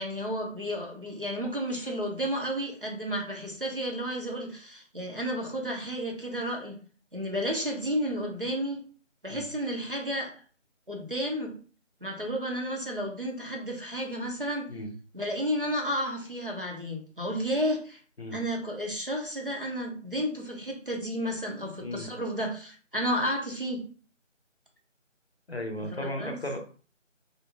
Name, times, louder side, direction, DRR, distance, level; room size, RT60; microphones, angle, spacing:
voice 1, 0.0-6.8 7.1-8.9 9.2-10.4 10.9-11.6 12.0-14.7 15.1-18.0 18.3-23.8 25.9-26.4, equal, 45° right, 0 dB, 0.5 m, -32 dB
voice 2, 21.8-22.1 25.5-26.7, left 1 dB, 55° left, 4 dB, 0.6 m, -35 dB
2.4 x 2.2 x 2.7 m, 0.40 s
figure-of-eight pair, 170°, 38 cm